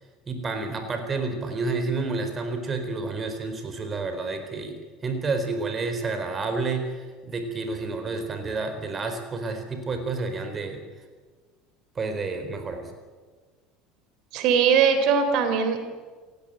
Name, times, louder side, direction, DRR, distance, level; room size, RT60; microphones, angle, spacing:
voice 1, 0.3-10.8 12.0-12.9, right 3 dB, 30° right, 7 dB, 4.3 m, -30 dB
voice 2, 14.3-15.8, right 6 dB, 50° right, 8 dB, 3.7 m, -20 dB
29.0 x 18.0 x 9.0 m, 1.4 s
figure-of-eight pair, 65°, 0 cm